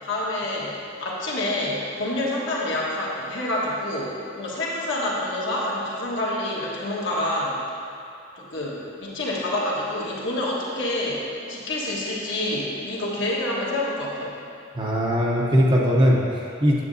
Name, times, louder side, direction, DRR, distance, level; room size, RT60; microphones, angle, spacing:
voice 1, 0.0-7.6 8.3-14.3, left 1 dB, 65° left, -5 dB, 1.4 m, -27 dB
voice 2, 14.7-16.8, equal, 25° right, -3 dB, 0.8 m, -20 dB
9.3 x 7.4 x 2.7 m, 2.7 s
head